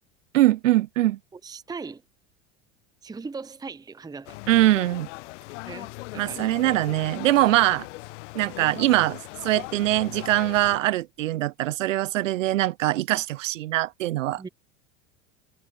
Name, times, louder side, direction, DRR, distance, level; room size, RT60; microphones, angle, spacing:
voice 1, 0.3-1.2 4.5-5.1 6.2-7.9 8.3-14.5, right 15 dB, 90° right, 0.6 m, -22 dB
voice 2, 1.3-2.0 3.0-4.4 5.7-6.4 14.4-14.5, right 4 dB, 10° right, 0.8 m, -38 dB
sound 1, 4.3-10.8, left 22 dB, 70° left, 0.6 m, -39 dB
hypercardioid pair, 95°, 37 cm